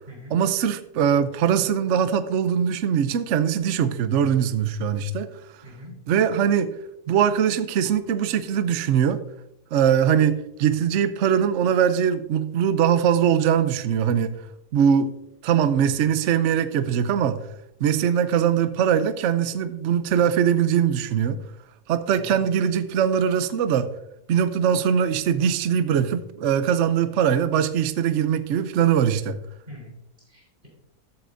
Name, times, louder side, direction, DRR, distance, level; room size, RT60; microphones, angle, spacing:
voice 1, 0.3-5.3 6.1-6.7 7.1-9.2 9.7-14.4 14.7-15.1 15.4-17.4 17.8-21.4 21.9-23.9 24.3-29.4, right 8 dB, 60° right, 0.8 m, -21 dB
voice 2, 5.6-5.9 9.9-10.0 22.2-22.4 29.7-29.9 30.3-30.7, left 1 dB, 35° right, 3.9 m, -43 dB
13.0 x 8.5 x 2.6 m
omnidirectional pair, 1.7 m